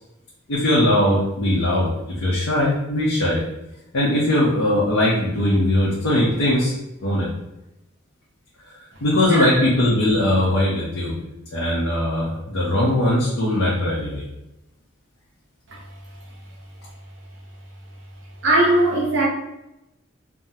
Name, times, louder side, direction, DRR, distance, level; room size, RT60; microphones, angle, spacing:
voice 1, 0.5-3.4 3.9-6.7 7.0-7.3 9.0-11.1 11.5-14.2, left 1 dB, 85° left, 0.7 m, -20 dB
voice 2, 18.4-19.3, right 2 dB, 60° right, 0.7 m, -18 dB
3.5 x 2.0 x 2.7 m
head